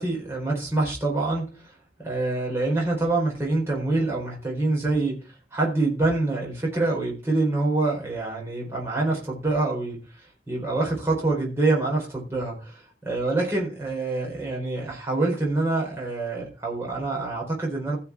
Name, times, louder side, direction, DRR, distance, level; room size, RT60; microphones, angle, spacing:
voice 1, 0.0-18.0, right 2 dB, 15° right, -3 dB, 4.3 m, -26 dB
16.0 x 5.9 x 4.6 m, 0.33 s
head